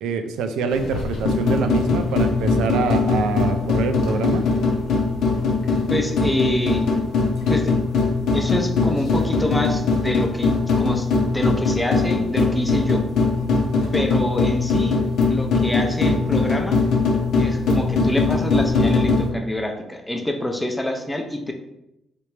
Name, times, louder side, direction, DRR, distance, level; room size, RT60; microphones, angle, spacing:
voice 1, 0.0-4.4, right 5 dB, 90° right, 7 dB, 0.3 m, -25 dB
sound 1, 0.7-19.3, left 3 dB, 80° left, 0.8 m, -21 dB
voice 2, 5.9-6.9 7.5-7.7 8.3-13.0 13.9-15.0 15.3-16.8 17.4-21.5, left 1 dB, 10° left, 4 dB, 0.5 m, -26 dB
3.3 x 2.9 x 3.1 m, 0.88 s
cardioid pair, 90°, 0 cm